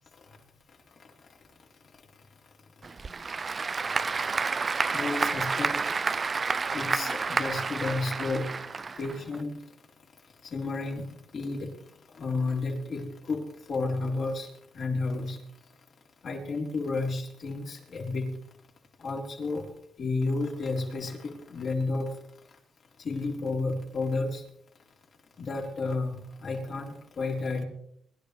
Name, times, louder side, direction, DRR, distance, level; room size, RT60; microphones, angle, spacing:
Applause / Crowd, 2.8-9.4, right 4 dB, 35° right, 0.4 m, -30 dB
voice 1, 4.9-5.8 6.7-8.5 9.0-9.5 10.5-11.0 11.3-11.7 12.2-13.4 13.7-14.5 14.7-15.4 16.2-18.3 19.0-19.7 20.0-22.1 23.0-24.4 25.4-26.2 26.4-27.6, left 3 dB, 55° left, -1 dB, 4.1 m, -31 dB
22.0 x 12.0 x 3.4 m, 0.69 s
cardioid pair, 90°, 0 cm